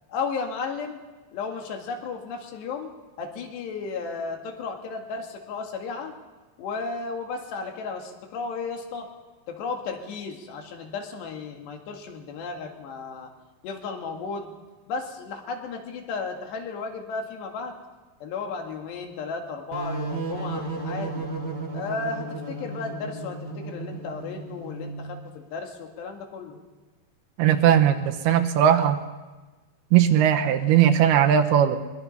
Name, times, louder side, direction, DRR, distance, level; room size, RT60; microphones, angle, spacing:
voice 1, 0.1-1.0 1.3-2.9 3.2-6.1 6.6-9.1 9.5-13.3 13.6-14.5 14.9-17.7 18.2-21.3 21.7-26.6, left 4 dB, 80° left, 3 dB, 4.2 m, -34 dB
sound 1, 19.7-25.2, right 2 dB, 40° right, 1.7 m, -34 dB
voice 2, 27.4-29.0 29.9-31.8, right 9 dB, 75° right, 6 dB, 2.8 m, -19 dB
22.5 x 22.0 x 5.6 m, 1.2 s
omnidirectional pair, 4.8 m